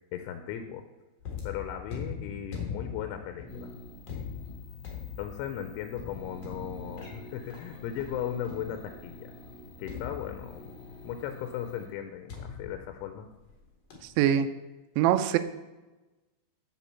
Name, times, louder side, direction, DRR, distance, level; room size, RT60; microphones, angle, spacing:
voice 1, 0.1-0.9 1.4-3.7 5.2-9.3 9.8-10.7 11.0-13.3, left 9 dB, 80° left, 7 dB, 2.8 m, -37 dB
sound 1, 1.2-9.1 9.9-10.9 12.3-13.6 13.9-14.2, left 6 dB, 65° left, 1.6 m, -41 dB
sound 2, 3.5-11.9, left 1 dB, ahead, 1.7 m, -48 dB
voice 2, 14.2-14.5 15.0-15.4, right 10 dB, 85° right, 9 dB, 2.7 m, -22 dB
7.3 x 7.1 x 5.7 m, 1.1 s
omnidirectional pair, 5.8 m